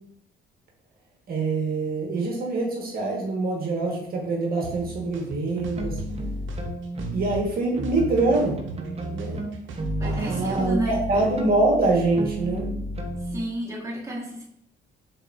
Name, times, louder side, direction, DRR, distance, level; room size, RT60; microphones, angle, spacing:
voice 1, 1.3-6.0 7.1-8.6 9.1-9.4 10.0-12.7, right 2 dB, 50° right, -1 dB, 1.1 m, -24 dB
sound 1, 4.6-4.7 5.1-6.1 6.5-7.6 7.8-10.1, right 3 dB, 75° right, 0.7 m, -40 dB
sound 2, 4.7-5.0 5.6-7.4 7.7-13.4, right 1 dB, 30° right, 0.7 m, -32 dB
voice 2, 10.0-11.0 13.2-14.4, right 1 dB, 15° right, -3 dB, 1.2 m, -32 dB
4.6 x 3.7 x 2.4 m, 0.69 s
cardioid pair, 90°, 20 cm